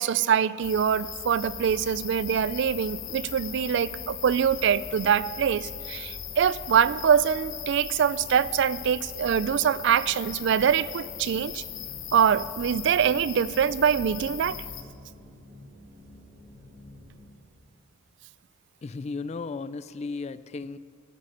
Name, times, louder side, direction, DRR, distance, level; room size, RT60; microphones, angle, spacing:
voice 1, 0.0-11.6 12.1-14.6, right 8 dB, 60° right, 18 dB, 0.3 m, -24 dB
sound 1, 0.6-14.8, left 9 dB, 65° left, 1.0 m, -39 dB
sound 2, 1.4-17.6, equal, 40° right, 2.6 m, -51 dB
voice 2, 18.8-20.8, left 4 dB, 30° left, 15 dB, 0.3 m, -35 dB
14.0 x 8.4 x 6.5 m, 2.1 s
head